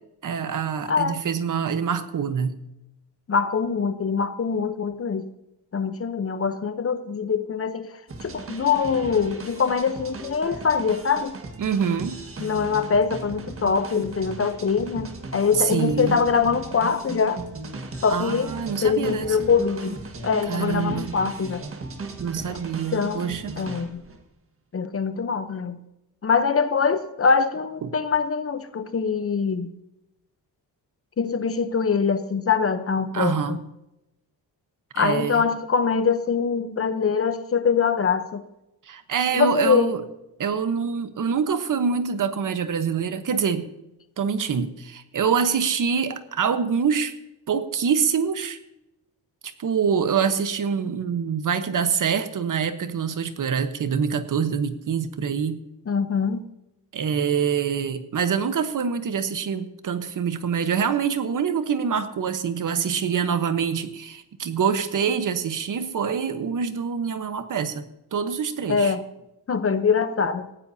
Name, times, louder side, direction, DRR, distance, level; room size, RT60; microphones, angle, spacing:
voice 1, 0.2-2.6 11.6-12.2 15.6-16.2 18.1-19.5 20.5-21.2 22.2-23.5 27.8-27.9 33.1-33.6 34.9-35.4 38.9-40.0 40.4-43.7 44.2-47.1 47.5-48.6 49.4-55.6 56.9-67.8 68.1-68.9, right 6 dB, 50° right, 10 dB, 1.1 m, -25 dB
voice 2, 0.9-1.2 3.3-5.3 5.7-7.9 8.2-11.4 12.4-17.4 18.0-18.5 18.8-20.0 20.2-21.6 22.5-22.6 22.9-24.0 24.7-25.8 26.2-29.7 31.2-33.6 34.9-38.4 39.3-39.9 55.9-56.5 68.7-69.0 69.5-70.5, left 5 dB, 35° left, 11 dB, 0.8 m, -23 dB
sound 1, 8.1-24.2, right 3 dB, 35° right, 1.6 m, -37 dB
18.5 x 15.0 x 2.8 m, 0.90 s
wide cardioid pair, 145°, 40 cm